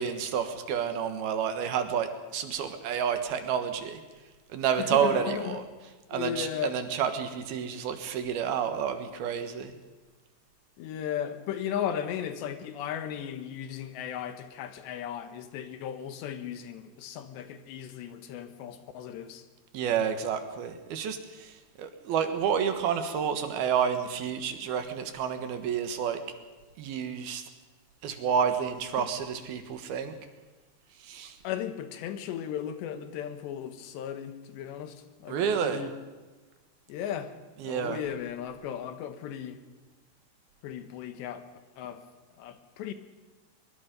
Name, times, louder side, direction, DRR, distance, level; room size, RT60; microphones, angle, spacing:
voice 1, 0.0-4.0 4.5-9.7 19.7-26.2 26.8-27.4 28.0-30.1 31.0-31.4 35.3-35.8 37.6-38.0, right 7 dB, 70° right, 8 dB, 3.2 m, -30 dB
voice 2, 4.8-5.6 6.1-6.8 10.8-19.4 29.0-29.1 31.4-35.9 36.9-37.4 37.6-39.6 40.6-41.5 41.8-42.0 42.3-42.9, left 9 dB, 90° left, 9 dB, 3.5 m, -36 dB
23.0 x 22.5 x 5.3 m, 1.2 s
omnidirectional pair, 4.9 m